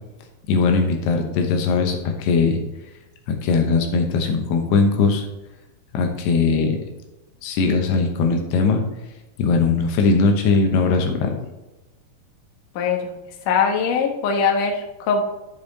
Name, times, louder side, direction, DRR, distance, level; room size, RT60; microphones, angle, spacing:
voice 1, 0.5-2.6 3.3-5.2 5.9-6.8 7.4-8.8 9.4-11.4, left 4 dB, 85° left, 3 dB, 3.1 m, -19 dB
voice 2, 12.8-13.1 13.5-15.2, left 6 dB, 65° left, 2 dB, 2.4 m, -21 dB
11.5 x 5.3 x 4.0 m, 1.0 s
omnidirectional pair, 4.6 m